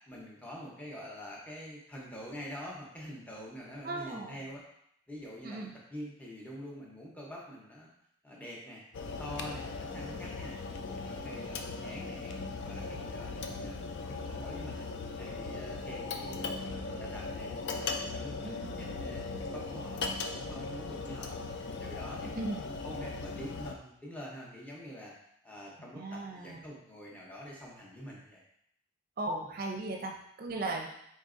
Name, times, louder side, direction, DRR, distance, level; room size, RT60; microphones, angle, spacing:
voice 1, 0.1-4.6 5.1-7.9 8.2-10.5 10.9-13.8 14.1-21.4 21.7-25.1 25.4-28.4, equal, 5° left, -4 dB, 0.8 m, -46 dB
voice 2, 3.8-4.4 5.4-5.7 18.4-18.9 22.2-22.6 26.0-26.6 29.2-30.9, right 2 dB, 45° right, 2 dB, 0.5 m, -37 dB
sound 1, 8.9-23.7, left 3 dB, 55° left, 0.3 m, -38 dB
4.0 x 4.0 x 2.5 m, 0.73 s
head